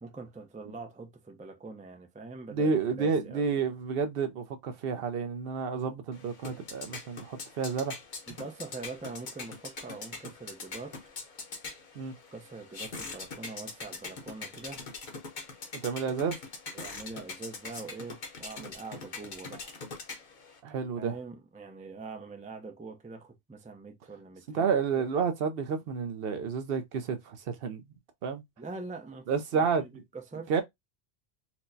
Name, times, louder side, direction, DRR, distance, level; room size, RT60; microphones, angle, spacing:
voice 1, 0.0-3.6 8.3-11.1 12.3-14.9 16.7-19.8 21.0-24.7 28.6-30.6, right 3 dB, 10° right, 0.3 m, -44 dB
voice 2, 2.5-8.0 12.0-12.1 15.8-16.3 20.6-21.2 24.5-27.8 28.2-28.4 29.3-30.0 30.5-30.6, right 5 dB, 65° right, 0.7 m, -30 dB
sound 1, 6.1-20.6, left 4 dB, 50° left, 0.9 m, -43 dB
4.4 x 2.1 x 2.5 m
omnidirectional pair, 1.1 m